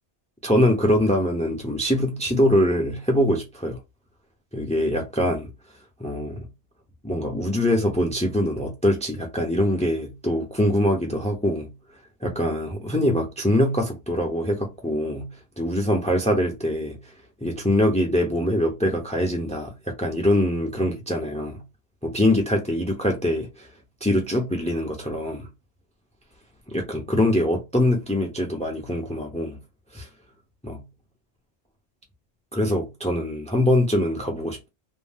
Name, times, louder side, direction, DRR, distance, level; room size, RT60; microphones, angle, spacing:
voice 1, 0.4-3.8 4.5-5.5 6.0-6.5 7.0-11.7 12.2-15.3 15.6-17.1 17.4-21.6 22.0-23.7 24.0-25.5 26.7-29.6 29.9-30.1 30.6-30.8 32.5-34.7, left 1 dB, 10° left, 0.4 m, -23 dB
2.6 x 2.0 x 3.4 m
omnidirectional pair, 1.2 m